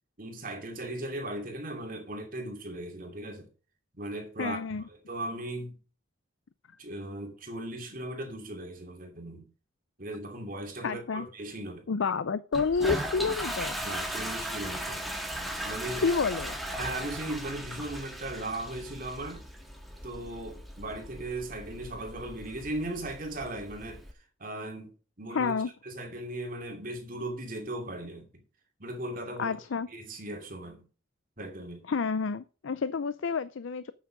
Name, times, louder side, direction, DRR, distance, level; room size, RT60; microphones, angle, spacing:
voice 1, 0.2-3.5 4.0-4.6 4.9-5.8 6.8-9.5 10.0-11.9 13.8-15.0 15.6-16.1 16.7-19.4 20.0-24.0 24.4-25.5 25.8-28.3 28.8-29.6 29.9-30.8 31.4-31.8, right 1 dB, 45° right, 2.7 m, -37 dB
voice 2, 4.4-4.8 10.8-11.3 11.9-13.8 16.0-16.5 25.3-25.7 29.4-29.9 31.9-33.9, left 5 dB, 80° left, 0.5 m, -29 dB
Toilet flush, 12.5-24.1, equal, ahead, 1.5 m, -38 dB
8.9 x 7.4 x 5.2 m
head